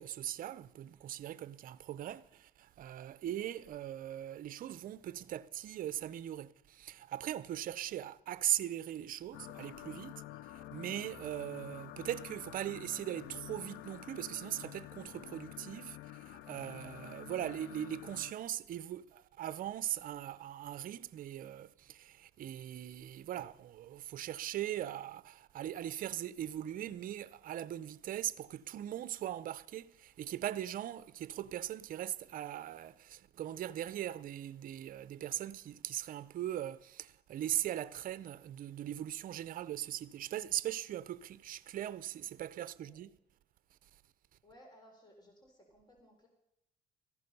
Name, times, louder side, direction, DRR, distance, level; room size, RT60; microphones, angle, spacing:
voice 1, 0.0-10.2 10.5-16.0 16.3-43.2, right 12 dB, 55° right, 0.6 m, -40 dB
sound 1, 9.3-18.3, left 15 dB, 85° left, 0.5 m, -49 dB
voice 2, 44.4-46.3, equal, 25° left, 3.7 m, -60 dB
14.5 x 11.0 x 5.4 m
cardioid pair, 110°, 17 cm